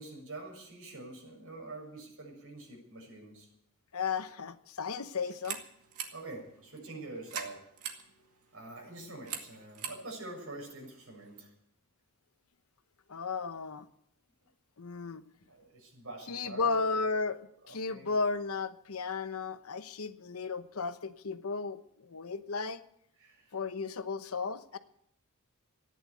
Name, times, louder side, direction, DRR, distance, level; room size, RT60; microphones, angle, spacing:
voice 1, 0.0-3.5 6.1-7.7 8.5-11.5 15.5-17.1 17.6-18.1 23.2-23.6, right 2 dB, 65° right, 1 dB, 6.6 m, -46 dB
voice 2, 3.9-5.6 13.1-13.8 14.8-15.2 16.3-17.4 17.7-22.8 23.5-24.8, left 4 dB, 75° left, 12 dB, 0.9 m, -34 dB
sound 1, 5.2-11.5, right 7 dB, 85° right, 2.1 m, -45 dB
15.0 x 10.5 x 8.4 m, 0.72 s
head